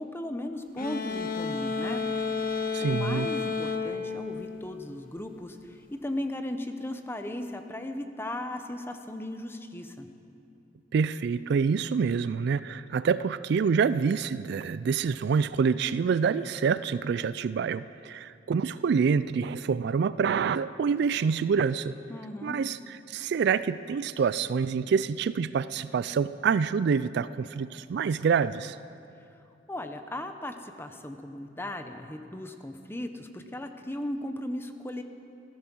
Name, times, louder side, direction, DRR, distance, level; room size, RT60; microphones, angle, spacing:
voice 1, 0.0-2.0 2.8-10.1 22.1-22.6 29.7-35.0, left 1 dB, 10° left, 7 dB, 0.9 m, -36 dB
sound 1, 0.8-5.2, left 5 dB, 50° left, 1.0 m, -32 dB
voice 2, 2.7-3.3 10.9-22.0 22.4-28.8, right 6 dB, 60° right, 16 dB, 0.3 m, -27 dB
15.0 x 14.0 x 6.1 m, 2.6 s
head